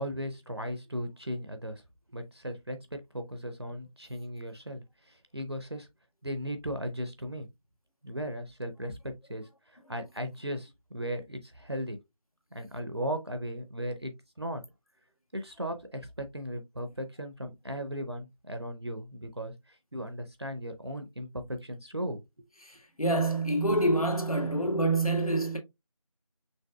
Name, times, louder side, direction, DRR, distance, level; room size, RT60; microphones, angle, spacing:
voice 1, 0.0-1.8 2.1-5.9 6.2-7.5 8.0-12.0 12.5-14.6 15.3-22.2, equal, 45° right, 0.6 m, -37 dB
voice 2, 22.6-25.6, right 2 dB, 75° left, 1.5 m, -27 dB
5.3 x 3.5 x 2.2 m
figure-of-eight pair, 170°, 18 cm